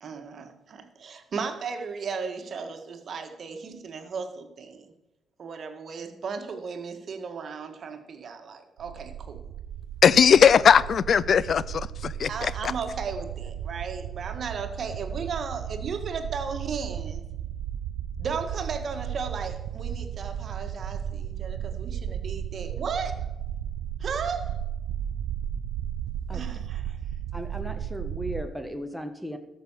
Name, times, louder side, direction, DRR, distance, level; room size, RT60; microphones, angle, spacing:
voice 1, 0.0-4.9 5.4-9.5 12.3-17.2 18.2-23.3 24.0-24.6 26.3-27.0, right 5 dB, 55° right, 1.7 m, -35 dB
sound 1, 8.8-28.4, right 9 dB, 80° right, 0.5 m, -35 dB
voice 2, 10.0-12.5, left 7 dB, 55° left, 0.4 m, -19 dB
voice 3, 27.3-29.4, equal, ahead, 1.4 m, -36 dB
13.0 x 6.2 x 7.4 m
supercardioid pair, 60°, 0 cm